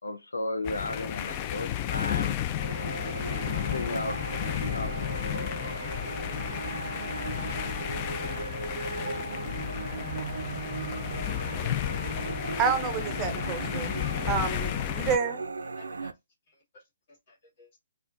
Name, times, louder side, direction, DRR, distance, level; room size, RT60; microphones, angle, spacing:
voice 1, 0.0-2.4 3.7-4.3 4.7-5.0, left 2 dB, 90° left, 0.5 m, -34 dB
sound 1, 0.6-15.2, left 12 dB, 30° left, 0.3 m, -33 dB
sound 2, 2.5-16.1, right 4 dB, 80° right, 0.4 m, -37 dB
voice 2, 12.6-13.9 14.3-15.4, right 6 dB, 20° right, 0.6 m, -29 dB
voice 3, 14.0-14.4 15.6-16.1 16.5-16.8 17.3-17.8, left 2 dB, 45° left, 2.0 m, -52 dB
4.2 x 2.2 x 2.5 m
hypercardioid pair, 140°, 0 cm